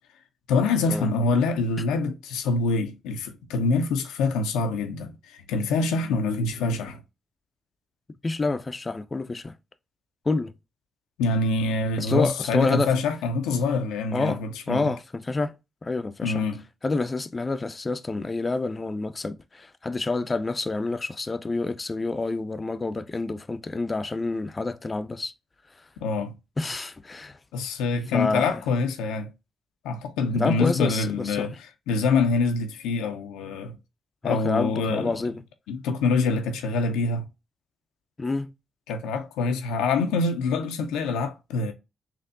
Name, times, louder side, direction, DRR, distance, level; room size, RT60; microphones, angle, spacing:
voice 1, 0.5-7.0 11.2-14.9 16.2-16.6 26.0-26.3 27.5-29.3 29.8-31.5 31.9-33.8 34.2-35.2 35.7-37.2 38.9-41.7, left 3 dB, 85° left, 0.5 m, -25 dB
voice 2, 8.2-9.5 10.3-10.5 12.0-12.9 14.1-15.5 15.8-16.4 16.8-25.3 25.8-25.9 26.6-27.4 28.1-28.6 30.3-31.5 34.2-35.3 38.2-38.5, left 3 dB, 35° left, 0.5 m, -28 dB
4.2 x 2.6 x 2.5 m
hypercardioid pair, 45°, 0 cm